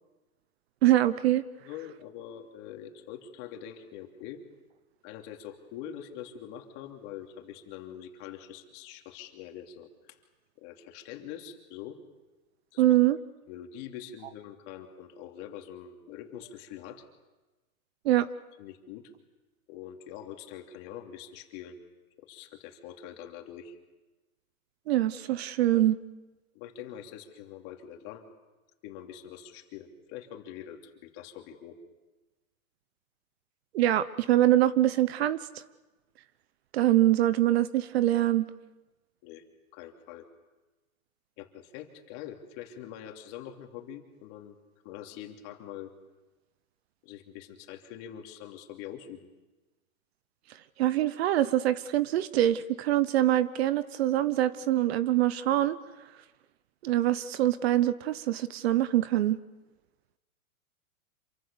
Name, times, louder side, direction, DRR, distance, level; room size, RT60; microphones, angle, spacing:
voice 1, 0.8-1.4 12.8-13.2 18.0-18.3 24.9-26.0 33.7-35.4 36.7-38.5 50.8-55.8 56.8-59.4, right 13 dB, 45° right, 16 dB, 0.9 m, -24 dB
voice 2, 1.6-4.4 5.0-10.2 10.6-12.0 12.7-12.8 13.5-17.0 18.6-19.1 19.7-21.8 22.2-23.7 26.5-28.2 28.8-31.8 39.2-39.4 39.7-40.3 41.4-44.5 44.8-45.9 47.0-49.3, left 10 dB, 35° left, 3 dB, 3.0 m, -44 dB
27.5 x 24.5 x 7.0 m, 1.2 s
hypercardioid pair, 145°, 43 cm